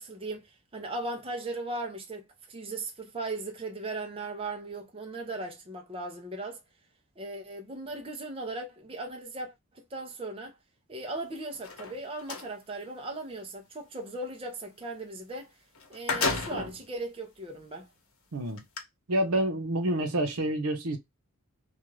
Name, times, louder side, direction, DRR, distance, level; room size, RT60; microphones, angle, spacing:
voice 1, 0.0-6.6 7.2-10.5 10.9-15.5 15.9-17.9, right 2 dB, 25° right, 0.5 m, -38 dB
sound 1, 11.5-12.5 15.3-15.4 15.7-16.8 17.5-17.6 18.6-18.8, left 3 dB, 70° left, 0.9 m, -31 dB
voice 2, 19.1-21.0, right 1 dB, 80° right, 0.8 m, -28 dB
2.5 x 2.3 x 3.1 m
head